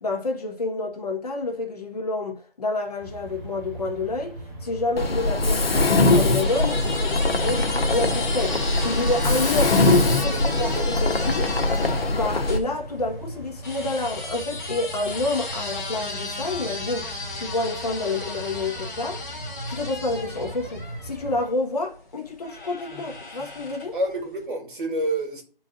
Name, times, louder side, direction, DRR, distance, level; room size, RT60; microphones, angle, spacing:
voice 1, 0.0-11.5 12.1-19.2 19.7-24.0, left 2 dB, 40° left, 1.5 m, -29 dB
compressor working, 3.0-21.4, right 1 dB, 25° right, 3.0 m, -39 dB
Mechanisms, 5.0-12.6, left 2 dB, 85° left, 1.3 m, -22 dB
sound 1, 5.9-12.6 13.6-21.5 22.4-24.0, left 2 dB, 15° left, 2.1 m, -35 dB
voice 2, 10.3-10.9 23.9-25.4, right 1 dB, 60° right, 2.8 m, -29 dB
12.5 x 4.8 x 2.5 m
figure-of-eight pair, 170°, 29 cm